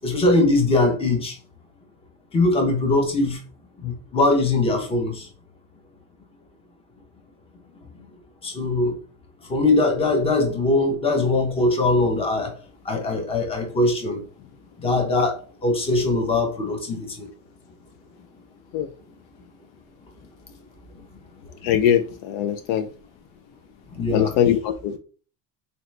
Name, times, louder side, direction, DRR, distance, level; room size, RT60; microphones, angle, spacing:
voice 1, 0.0-1.4 2.3-3.4 3.8-5.3 7.9-8.1 8.4-9.0 9.5-12.5 12.8-14.2 14.8-17.3 20.9-21.0 23.9-24.3, left 2 dB, 15° left, 0.7 m, -21 dB
voice 2, 21.6-22.9 24.1-25.0, left 10 dB, 60° left, 0.5 m, -21 dB
3.8 x 2.9 x 3.2 m
cardioid pair, 155°, 43 cm